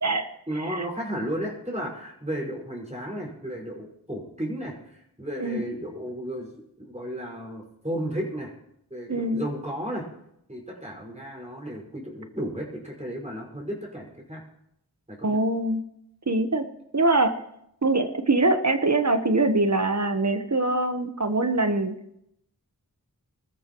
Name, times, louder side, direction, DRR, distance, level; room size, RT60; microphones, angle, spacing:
voice 1, 0.5-8.5 8.9-10.1 10.5-14.4 15.1-15.4, equal, 20° right, -2 dB, 5.2 m, -34 dB
voice 2, 9.1-9.4 15.2-15.8 16.3-16.6 16.9-17.3 17.8-21.9, right 2 dB, 45° right, 8 dB, 1.1 m, -23 dB
23.5 x 14.0 x 3.0 m, 0.79 s
wide cardioid pair, 45°, 37 cm